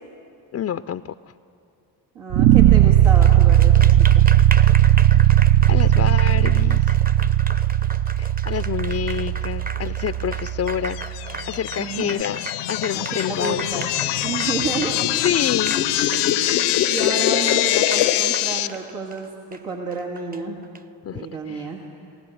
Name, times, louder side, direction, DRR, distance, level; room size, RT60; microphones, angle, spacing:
voice 1, 0.5-1.2 4.9-5.3 5.7-7.0 8.2-12.4 12.7-13.9 15.2-15.8 21.0-21.7, left 9 dB, 30° left, 13 dB, 0.4 m, -28 dB
voice 2, 2.1-4.3 11.8-12.2 12.9-13.9 14.2-15.1 16.5-20.6 21.1-21.9, right 4 dB, 85° right, -2 dB, 2.0 m, -31 dB
sound 1, 2.3-11.4, right 12 dB, 60° right, 0.6 m, -17 dB
Applause, 3.0-20.8, right 3 dB, 20° right, 0.7 m, -36 dB
sound 2, 10.9-18.7, left 13 dB, 80° left, 0.7 m, -23 dB
20.0 x 17.5 x 7.8 m, 2.6 s
hypercardioid pair, 45°, 49 cm